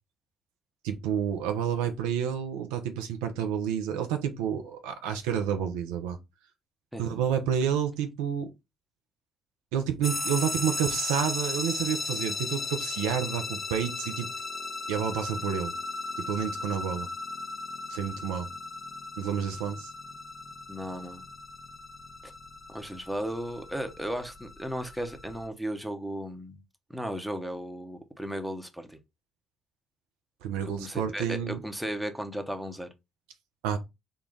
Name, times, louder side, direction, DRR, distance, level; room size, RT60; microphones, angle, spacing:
voice 1, 0.8-6.2 7.0-8.5 9.7-14.3 14.9-15.7 16.3-17.1 17.9-18.5 19.2-19.9 30.4-31.6 33.6-33.8, right 8 dB, 80° right, 0.5 m, -29 dB
sound 1, 10.0-25.5, left 3 dB, 30° left, 0.9 m, -36 dB
voice 2, 20.7-21.2 22.7-26.6 26.9-29.0 30.8-32.9, equal, ahead, 0.9 m, -35 dB
3.8 x 2.3 x 3.8 m
hypercardioid pair, 50°, 0 cm